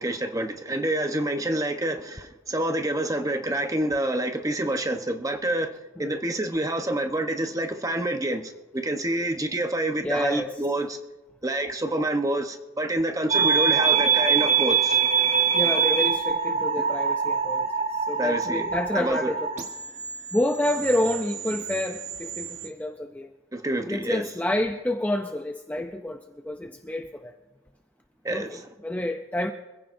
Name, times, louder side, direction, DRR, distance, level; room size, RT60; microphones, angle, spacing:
voice 1, 0.0-11.0 11.4-15.0 18.2-18.7 18.9-19.3 23.5-24.3 28.2-28.7, right 1 dB, 15° right, 0.9 m, -27 dB
voice 2, 10.0-10.5 13.4-13.6 15.5-19.5 20.3-23.3 23.8-27.3 28.3-29.5, left 1 dB, 10° left, 0.5 m, -29 dB
sound 1, 13.3-22.7, right 6 dB, 35° right, 1.4 m, -25 dB
25.0 x 15.5 x 2.6 m
head